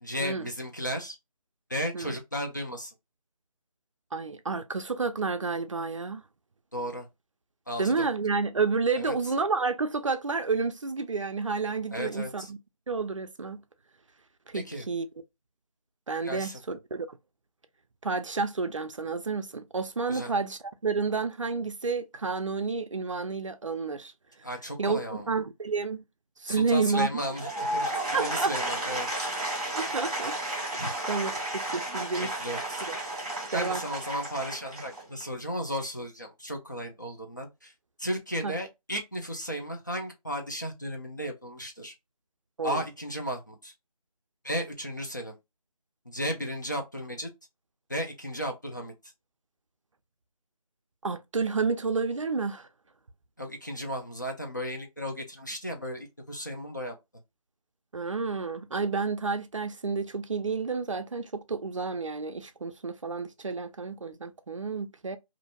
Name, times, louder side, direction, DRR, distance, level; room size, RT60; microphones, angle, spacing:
voice 1, 0.0-1.2 1.7-2.9 6.7-7.1 7.7-8.1 9.0-9.1 11.9-12.5 14.5-14.8 16.2-16.6 20.1-20.3 24.4-25.3 26.5-27.9 28.2-29.3 29.8-29.9 30.8-30.9 32.2-32.9 33.5-37.7 38.0-41.9 42.6-43.7 44.4-45.3 46.1-47.3 47.9-48.9 53.4-56.9, equal, 30° left, 0.4 m, -34 dB
voice 2, 4.1-6.2 7.8-12.6 12.9-13.6 14.5-15.1 16.1-17.2 18.0-24.1 24.8-26.0 26.4-27.2 28.1-28.7 29.7-30.8 31.1-32.3 32.9-33.0 33.5-33.8 38.4-38.5 42.6-42.8 51.0-52.7 57.9-65.2, right 4 dB, 55° right, 0.4 m, -30 dB
Applause / Crowd, 27.1-35.4, right 1 dB, 10° right, 0.7 m, -33 dB
2.5 x 2.1 x 2.6 m
figure-of-eight pair, 175°, 19 cm